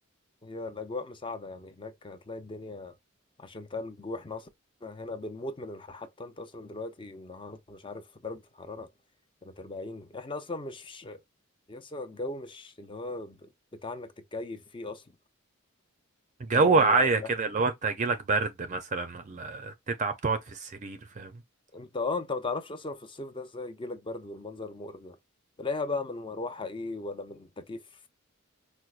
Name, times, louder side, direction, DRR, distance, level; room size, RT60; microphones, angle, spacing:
voice 1, 0.4-2.9 3.4-4.5 4.8-8.9 9.4-11.2 11.7-15.0 16.5-17.3 21.7-25.2 25.6-27.8, left 3 dB, 25° left, 0.6 m, -37 dB
voice 2, 16.4-21.3, right 4 dB, 35° right, 0.4 m, -27 dB
4.5 x 2.1 x 2.4 m
head